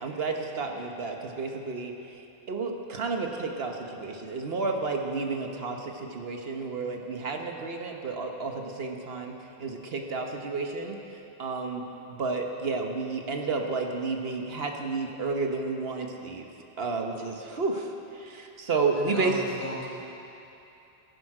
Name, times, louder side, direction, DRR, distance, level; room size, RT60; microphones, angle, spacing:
voice 1, 0.0-1.9 2.5-9.3 9.6-11.0 11.4-11.8 12.1-16.4 16.8-17.9 18.3-19.3, right 4 dB, 70° right, 3 dB, 1.3 m, -31 dB
voice 2, 18.7-19.9, left 1 dB, 85° left, -5 dB, 3.1 m, -37 dB
16.5 x 10.5 x 4.9 m, 2.9 s
omnidirectional pair, 1.0 m